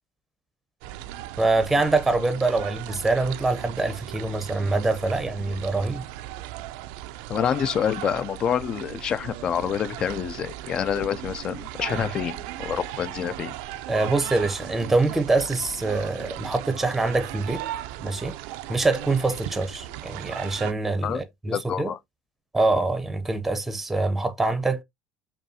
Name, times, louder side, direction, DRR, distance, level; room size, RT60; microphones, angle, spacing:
sound 1, 0.8-20.7, right 14 dB, 80° right, 0.3 m, -37 dB
voice 1, 1.4-6.0 11.9-12.1 13.9-17.6 18.0-18.3 18.7-21.9 22.5-24.8, right 3 dB, 10° right, 0.6 m, -24 dB
voice 2, 7.3-13.5 21.0-22.0, left 8 dB, 40° left, 0.3 m, -27 dB
5.3 x 2.3 x 2.6 m
cardioid pair, 125°, 2 cm